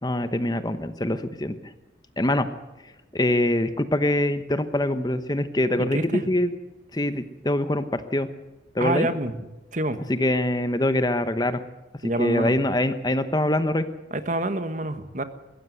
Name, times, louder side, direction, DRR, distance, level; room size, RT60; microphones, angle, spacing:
voice 1, 0.0-1.7 2.2-2.5 3.1-6.6 6.9-8.3 8.7-9.1 10.1-11.6 12.0-13.8, left 1 dB, 20° left, 10 dB, 0.9 m, -24 dB
voice 2, 5.8-6.2 8.8-9.4 9.7-10.0 12.0-12.5 14.1-15.2, right 1 dB, 40° right, 10 dB, 1.4 m, -27 dB
21.5 x 15.5 x 8.0 m, 1.1 s
head